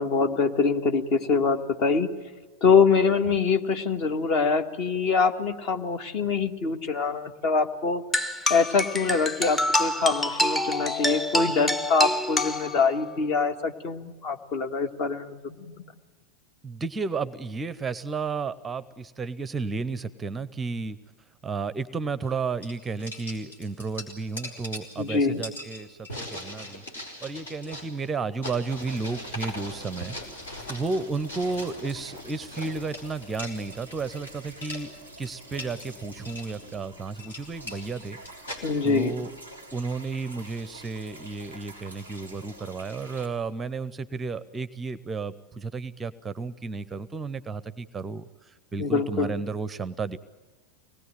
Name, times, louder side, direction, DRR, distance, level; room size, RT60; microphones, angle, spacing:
voice 1, 0.0-2.1 2.6-8.0 8.5-15.8 25.0-25.4 38.6-39.2 48.8-49.3, left 5 dB, 40° left, 8 dB, 1.6 m, -24 dB
sound 1, 8.1-13.1, left 1 dB, 10° left, 0.9 m, -27 dB
voice 2, 16.6-21.0 21.4-26.8 27.2-38.6 38.8-39.3 39.7-50.2, right 4 dB, 15° right, 18 dB, 0.7 m, -33 dB
sound 2, 22.2-22.4 22.6-34.3 34.6-34.8 35.3-35.9 36.2-36.5 37.0-38.6, left 1 dB, 70° left, 4.6 m, -40 dB
sound 3, 28.7-43.3, right 1 dB, 90° left, 5.0 m, -47 dB
25.0 x 19.5 x 8.9 m, 1.3 s
figure-of-eight pair, 90°, 0 cm